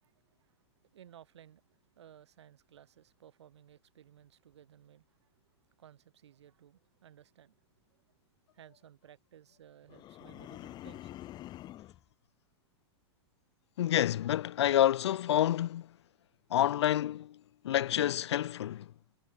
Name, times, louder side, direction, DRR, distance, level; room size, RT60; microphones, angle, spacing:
voice 1, 0.0-5.3 5.6-7.6 7.9-8.2 8.5-11.2, right 10 dB, 80° right, 6.9 m, -58 dB
sound 1, 9.9-12.0, left 14 dB, 30° left, 2.2 m, -46 dB
voice 2, 13.8-15.9 16.5-17.4 17.6-18.9, left 12 dB, 75° left, 1.1 m, -28 dB
hypercardioid pair, 135°, 14 cm